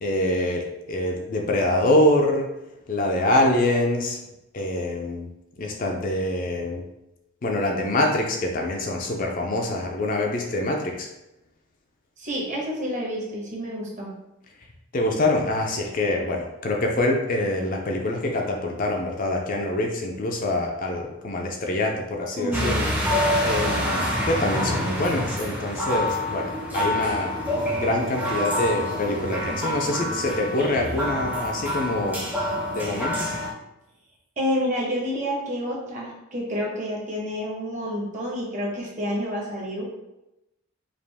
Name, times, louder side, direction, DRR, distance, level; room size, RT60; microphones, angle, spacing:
voice 1, 0.0-2.5 2.9-4.2 4.5-5.3 5.6-6.8 7.4-11.1 14.9-22.9 23.5-27.3 27.8-32.2 32.7-33.3, left 1 dB, 40° left, 1 dB, 0.4 m, -25 dB
voice 2, 12.2-14.1 22.4-22.8 34.4-39.8, equal, 35° right, -3 dB, 1.0 m, -29 dB
sound 1, 22.5-33.5, left 1 dB, 5° right, 0.6 m, -27 dB
5.0 x 2.5 x 3.4 m, 0.92 s
head